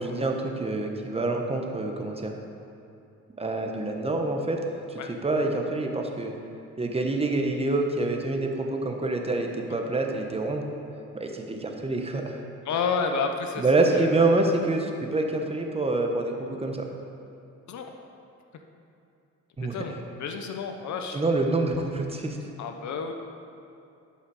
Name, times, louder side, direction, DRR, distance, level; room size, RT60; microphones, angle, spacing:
voice 1, 0.0-2.3 3.4-4.6 4.9-6.3 6.8-10.7 11.1-12.4 13.6-16.9 19.6-19.8 21.1-22.4, right 2 dB, 20° right, 2 dB, 1.0 m, -26 dB
voice 2, 12.6-14.4 17.7-17.9 19.7-21.2 22.6-23.1, left 5 dB, 70° left, 5 dB, 0.8 m, -31 dB
12.0 x 5.6 x 4.8 m, 2.7 s
cardioid pair, 90°, 30 cm